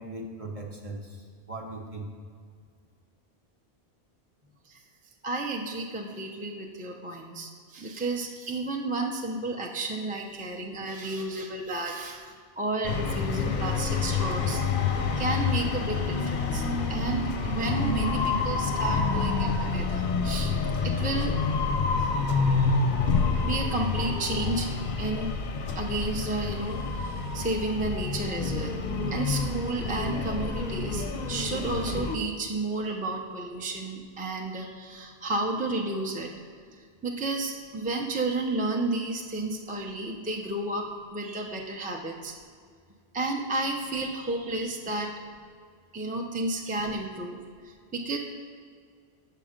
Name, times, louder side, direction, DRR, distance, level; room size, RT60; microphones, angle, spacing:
voice 1, 0.0-2.1, right 2 dB, 35° right, 1 dB, 0.8 m, -39 dB
voice 2, 5.2-20.5 20.8-21.3 22.0-22.1 22.5-22.7 23.4-24.7 25.0-25.3 25.8-28.8 29.1-36.3 37.0-40.8 41.1-42.3 43.1-45.1 45.9-47.4 47.7-48.2, right 2 dB, 10° right, 1 dB, 0.6 m, -32 dB
sound 1, 12.8-32.2, left 4 dB, 50° left, 0.7 m, -28 dB
7.6 x 6.7 x 5.1 m, 2.1 s
omnidirectional pair, 1.1 m